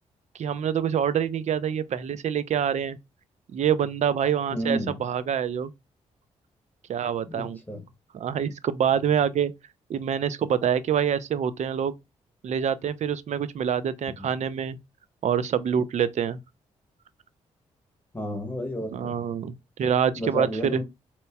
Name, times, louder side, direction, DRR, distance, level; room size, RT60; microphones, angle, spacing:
voice 1, 0.4-3.0 3.5-5.7 6.9-7.6 8.1-9.5 9.9-11.9 12.4-14.8 15.2-16.4 18.9-20.8, right 8 dB, 60° right, 0.5 m, -26 dB
voice 2, 4.5-5.0 7.2-7.8 14.1-14.3 18.1-19.2 20.2-20.8, equal, 10° left, 1.1 m, -32 dB
4.2 x 2.9 x 2.2 m
supercardioid pair, 60°, 13 cm